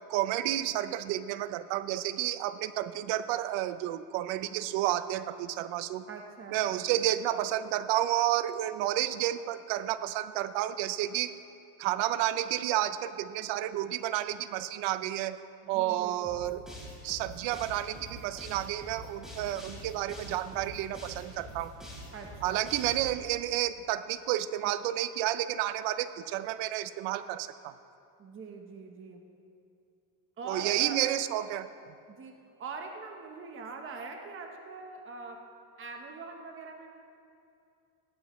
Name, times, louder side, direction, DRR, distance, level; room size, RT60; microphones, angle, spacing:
voice 1, 0.1-6.1 6.5-11.3 11.8-15.4 15.7-16.6 17.0-21.7 22.4-27.7 30.5-31.7, right 13 dB, 75° right, 13 dB, 0.7 m, -31 dB
voice 2, 6.1-6.9 15.6-16.3 22.1-22.9 28.2-29.2 30.4-31.0 32.1-35.4 35.8-36.9, right 4 dB, 25° right, 3 dB, 1.1 m, -43 dB
sound 1, 16.2-23.1, equal, ahead, 3.9 m, -45 dB
19.0 x 14.5 x 3.1 m, 2.5 s
cardioid pair, 150°, 46 cm